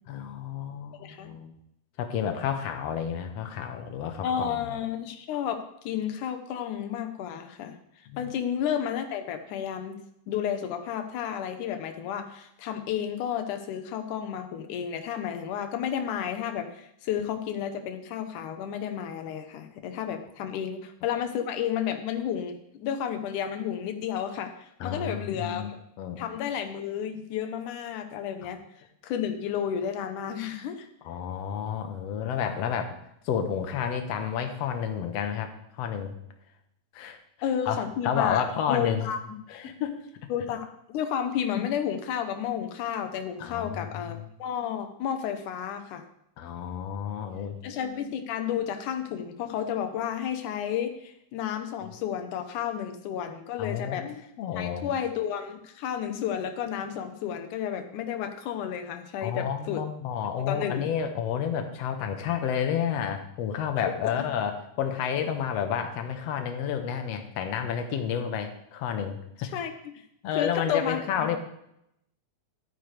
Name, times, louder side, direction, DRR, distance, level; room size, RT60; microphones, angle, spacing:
voice 1, 0.1-1.5 2.0-4.8 8.1-8.3 24.8-25.7 26.0-26.2 28.4-28.5 31.0-32.9 33.2-36.2 36.9-37.2 37.7-39.1 39.5-40.3 43.4-44.3 46.4-47.6 53.6-54.9 59.2-69.5 70.2-71.4, left 8 dB, 65° left, 6 dB, 2.0 m, -31 dB
voice 2, 1.0-1.3 4.2-10.0 10.3-25.8 26.2-28.6 29.0-30.9 37.4-39.2 40.3-46.0 47.6-54.1 54.6-59.8 60.5-60.9 64.0-64.1 69.5-70.0 70.3-71.3, left 9 dB, 90° left, 7 dB, 2.4 m, -32 dB
12.0 x 9.4 x 3.3 m, 0.76 s
omnidirectional pair, 3.5 m